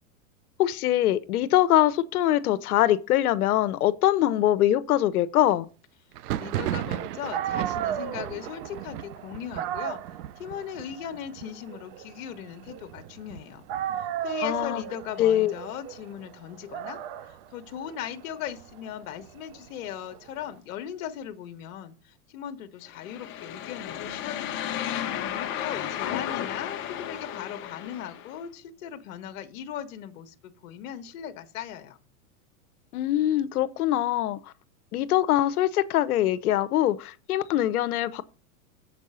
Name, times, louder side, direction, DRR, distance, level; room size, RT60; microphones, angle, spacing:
voice 1, 0.6-5.7 14.4-14.8 15.2-15.5 32.9-34.4 34.9-38.2, left 13 dB, 75° left, 0.8 m, -23 dB
Thunder, 6.1-15.6 15.9-16.6 16.8-17.8 18.2-19.9, right 12 dB, 90° right, 0.6 m, -38 dB
voice 2, 6.3-13.7 13.9-32.0, left 10 dB, 60° left, 1.1 m, -39 dB
Dog, 7.0-7.1 7.3-13.3 13.7-20.5, right 10 dB, 40° right, 0.6 m, -36 dB
sound 1, 22.9-28.4, left 10 dB, 25° left, 0.9 m, -33 dB
7.4 x 5.3 x 5.5 m
supercardioid pair, 145°, 45 cm